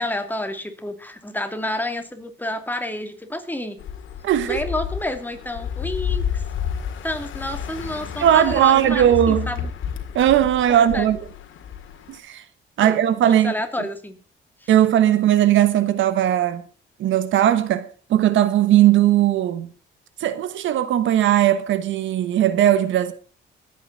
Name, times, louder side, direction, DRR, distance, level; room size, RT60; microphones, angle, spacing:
voice 1, 0.0-3.8 4.4-6.4 7.0-9.7 10.7-11.1 12.8-13.0 13.3-14.2 14.6-14.7, left 1 dB, 10° left, 2.6 m, -29 dB
sound 1, 3.8-12.2, left 8 dB, 75° left, 2.2 m, -30 dB
voice 2, 4.2-4.6 8.2-9.5 10.1-11.2 12.1-12.4 12.8-13.5 14.7-16.6 17.0-19.7 20.2-23.1, right 11 dB, 75° right, 1.2 m, -18 dB
22.5 x 9.1 x 4.1 m
cardioid pair, 90°, 20 cm